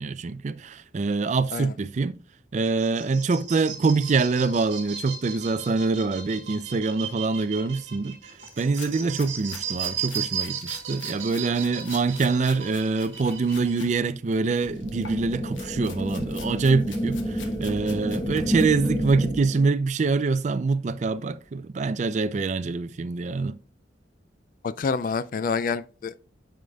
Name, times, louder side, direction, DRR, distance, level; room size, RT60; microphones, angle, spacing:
voice 1, 0.0-2.2 2.5-23.6, right 4 dB, 40° right, 0.4 m, -25 dB
sound 1, 2.6-13.9, right 8 dB, 75° right, 1.8 m, -36 dB
sound 2, 8.4-13.9 14.3-19.3, left 6 dB, 85° left, 1.1 m, -46 dB
sound 3, 14.6-19.7, equal, 5° left, 0.7 m, -30 dB
voice 2, 24.6-26.3, left 5 dB, 45° left, 0.4 m, -27 dB
9.1 x 4.9 x 2.2 m
head